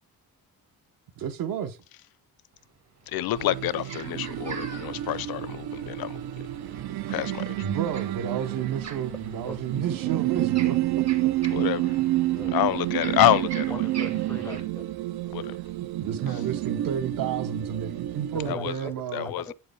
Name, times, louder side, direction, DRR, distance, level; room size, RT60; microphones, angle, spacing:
voice 1, 1.2-1.8 7.6-11.3 11.7-11.8 15.8-19.3, right 8 dB, 65° right, 0.8 m, -31 dB
sound 1, 2.5-2.6 3.0-14.6, right 5 dB, 45° right, 1.4 m, -44 dB
voice 2, 3.1-6.2 7.1-7.6 11.5-12.0 12.5-13.7 15.3-15.6 16.3-16.4 18.5-18.8 19.1-19.5, left 14 dB, 70° left, 0.5 m, -27 dB
sound 2, 3.3-18.5, right 16 dB, 80° right, 0.5 m, -29 dB
voice 3, 12.4-12.8 13.7-14.8 18.1-18.9 19.2-19.5, left 2 dB, 5° left, 0.4 m, -40 dB
8.0 x 4.6 x 3.3 m
wide cardioid pair, 170°, 37 cm